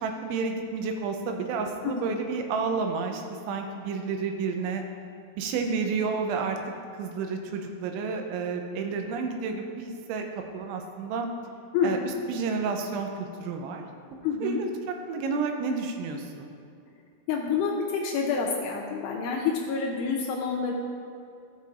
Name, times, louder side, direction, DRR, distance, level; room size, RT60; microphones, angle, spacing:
voice 1, 0.0-3.2 3.5-4.8 5.4-6.6 7.0-10.2 10.5-11.3 11.8-13.8 14.4-14.7 15.1-16.5, right 4 dB, 90° right, 4 dB, 3.1 m, -30 dB
voice 2, 1.8-2.2 11.7-12.0 14.2-14.6 17.3-20.7, left 5 dB, 80° left, 0 dB, 2.5 m, -28 dB
15.0 x 5.8 x 2.5 m, 2.5 s
omnidirectional pair, 5.3 m